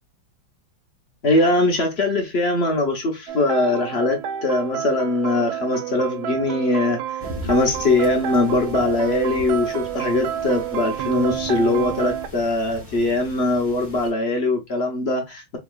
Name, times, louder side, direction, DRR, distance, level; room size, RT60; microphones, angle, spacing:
voice 1, 1.2-7.0 7.4-15.6, left 2 dB, 55° left, 0.7 m, -21 dB
sound 1, 3.3-12.3, right 9 dB, 75° right, 0.9 m, -29 dB
sound 2, 7.2-14.1, left 1 dB, 10° right, 1.1 m, -39 dB
4.4 x 2.9 x 2.3 m
omnidirectional pair, 2.2 m